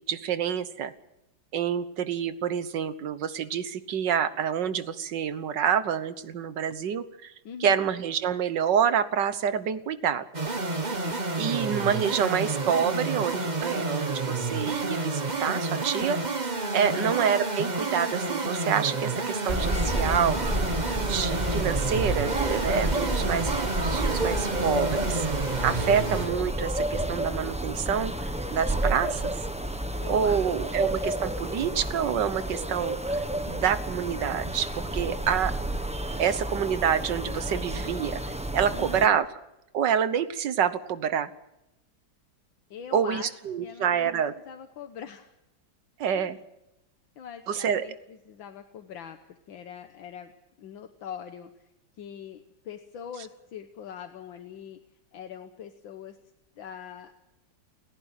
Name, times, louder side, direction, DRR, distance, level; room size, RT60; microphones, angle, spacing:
voice 1, 0.1-0.9 1.5-7.3 7.6-10.2 11.4-16.2 16.7-20.6 21.0-23.5 23.8-29.3 30.1-33.2 33.5-35.5 36.2-38.2 38.5-39.3 39.7-41.3 42.9-44.3 46.0-46.4 47.5-47.8, right 8 dB, 65° right, 12 dB, 1.7 m, -27 dB
voice 2, 7.5-7.8 10.9-11.2 16.9-17.2 23.0-23.4 30.0-30.5 38.7-39.2 42.7-44.1 44.5-45.3 46.1-46.4 47.2-50.3 50.6-54.8 55.1-56.2 56.6-57.1, left 8 dB, 80° left, 6 dB, 1.9 m, -42 dB
sound 1, 10.3-26.4, right 3 dB, 25° right, 1.4 m, -30 dB
sound 2, 19.5-39.1, right 1 dB, 5° right, 0.7 m, -30 dB
29.5 x 11.0 x 9.1 m, 0.92 s
omnidirectional pair, 2.1 m